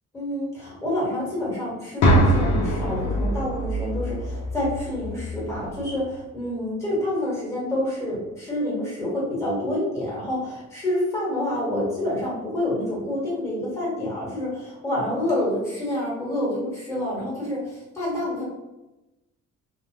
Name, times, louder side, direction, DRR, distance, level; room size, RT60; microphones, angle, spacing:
voice 1, 0.1-18.4, left 1 dB, 10° left, -7 dB, 1.3 m, -28 dB
sound 1, 2.0-6.0, right 1 dB, 75° left, 0.6 m, -23 dB
2.4 x 2.0 x 3.0 m, 0.99 s
cardioid pair, 90°, 30 cm